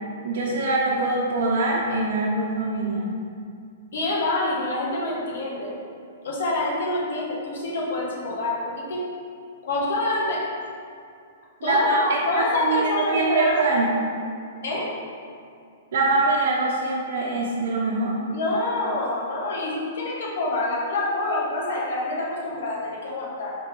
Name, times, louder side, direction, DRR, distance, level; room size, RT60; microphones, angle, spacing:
voice 1, 0.2-3.1 11.6-13.9 15.9-18.2, right 3 dB, 60° right, -6 dB, 0.9 m, -23 dB
voice 2, 3.9-5.8 6.2-9.0 9.6-10.5 11.6-13.6 14.6-14.9 18.3-23.6, left 2 dB, 70° left, -3 dB, 1.5 m, -26 dB
5.2 x 3.9 x 5.3 m, 2.3 s
hypercardioid pair, 160°, 0 cm